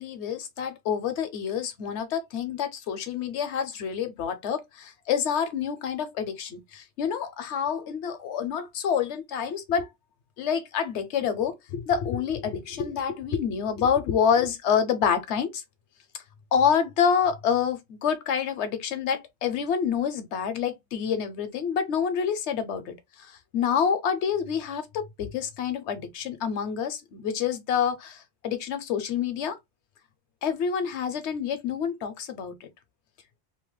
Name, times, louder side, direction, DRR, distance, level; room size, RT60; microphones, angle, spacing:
voice 1, 0.0-9.9 10.4-15.6 16.5-29.6 30.4-32.7, left 7 dB, 75° left, 0.9 m, -27 dB
2.8 x 2.2 x 3.0 m
omnidirectional pair, 1.2 m